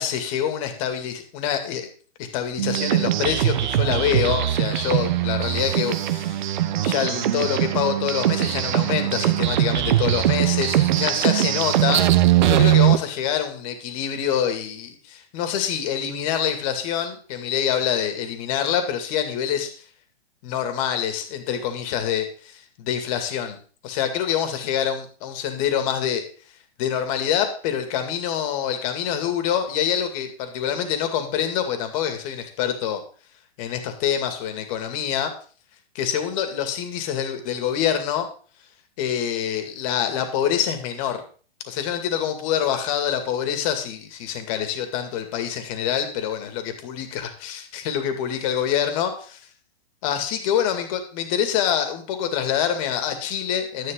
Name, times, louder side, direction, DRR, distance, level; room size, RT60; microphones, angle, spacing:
voice 1, 0.0-1.9 2.2-6.4 6.8-12.0 12.4-19.8 20.4-23.6 23.8-26.2 26.8-33.0 33.6-35.3 35.9-38.3 39.0-41.2 41.6-49.4 50.0-53.9, left 9 dB, 35° left, 6 dB, 2.3 m, -26 dB
sound 1, 2.6-13.0, right 13 dB, 50° right, 1.0 m, -21 dB
12.0 x 10.5 x 3.9 m, 0.40 s
hypercardioid pair, 160°, 31 cm